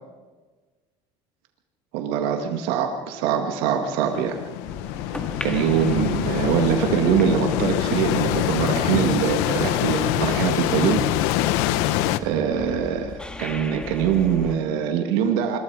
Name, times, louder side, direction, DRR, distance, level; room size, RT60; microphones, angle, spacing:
voice 1, 1.9-4.4 5.1-11.0 12.2-15.6, right 8 dB, 85° right, 4 dB, 2.1 m, -23 dB
sound 1, 3.9-12.2, left 14 dB, 85° left, 1.1 m, -24 dB
sound 2, 4.6-14.6, left 1 dB, 5° left, 2.4 m, -36 dB
25.5 x 22.0 x 5.0 m, 1.3 s
cardioid pair, 110°, 13 cm